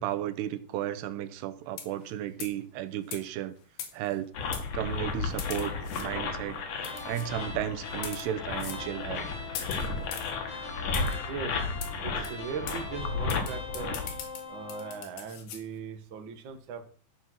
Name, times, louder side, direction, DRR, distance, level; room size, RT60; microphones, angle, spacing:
voice 1, 0.0-3.5 3.9-4.3 4.7-6.6 7.1-9.3, right 12 dB, 85° right, 3.0 m, -34 dB
sound 1, 1.7-2.1 2.4-2.6 3.1-3.2 3.8-4.2 4.5-4.7 5.4-6.1 6.8-7.3 7.9-8.3 8.6-8.8 9.5-10.3 10.9-11.2 11.8-11.9 12.2-12.3 12.7-12.8 13.3-15.6, left 8 dB, 75° left, 3.7 m, -40 dB
sound 2, 4.3-14.3, left 4 dB, 60° left, 3.0 m, -34 dB
sound 3, 6.8-15.0, left 4 dB, 35° left, 2.1 m, -42 dB
voice 2, 11.3-11.6 12.0-14.0 14.5-16.8, right 6 dB, 60° right, 1.2 m, -39 dB
14.5 x 5.6 x 6.3 m
omnidirectional pair, 4.6 m